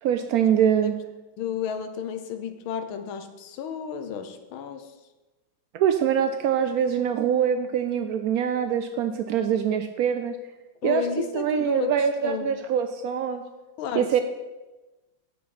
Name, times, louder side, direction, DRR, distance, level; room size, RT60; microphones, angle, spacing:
voice 1, 0.0-0.9 5.7-10.4 10.8-11.0 11.3-13.4 13.9-14.2, right 8 dB, 85° right, 8 dB, 0.8 m, -24 dB
voice 2, 1.4-4.9 10.8-12.6 13.8-14.1, left 8 dB, 85° left, 8 dB, 1.6 m, -32 dB
9.4 x 5.9 x 6.0 m, 1.1 s
omnidirectional pair, 2.2 m